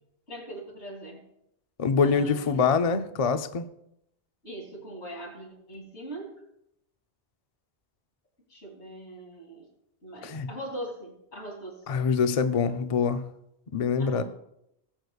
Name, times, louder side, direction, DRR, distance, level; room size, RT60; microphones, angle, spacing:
voice 1, 0.3-1.3 2.0-2.6 4.4-6.4 8.5-9.7 10.0-11.9 14.0-14.2, right 1 dB, 80° left, -1 dB, 3.4 m, -41 dB
voice 2, 1.8-3.7 10.2-10.5 11.9-13.2 13.7-14.2, left 5 dB, 45° left, 9 dB, 0.5 m, -24 dB
18.5 x 7.9 x 2.4 m, 0.79 s
omnidirectional pair, 1.1 m